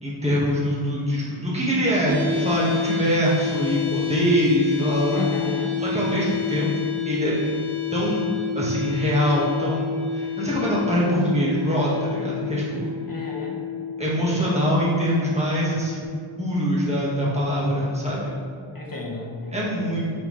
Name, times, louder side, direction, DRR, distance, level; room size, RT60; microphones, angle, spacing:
voice 1, 0.0-5.2 5.8-6.7 7.1-7.3 7.9-8.3 8.5-12.9 14.0-16.1 16.4-18.3 19.5-20.1, equal, 15° right, -7 dB, 1.7 m, -23 dB
sound 1, 2.1-16.0, left 6 dB, 30° right, 1.2 m, -29 dB
voice 2, 5.1-5.8 13.1-13.6 18.7-19.9, left 2 dB, 45° left, -2 dB, 1.3 m, -33 dB
9.4 x 4.4 x 3.2 m, 2.2 s
wide cardioid pair, 50°, 48 cm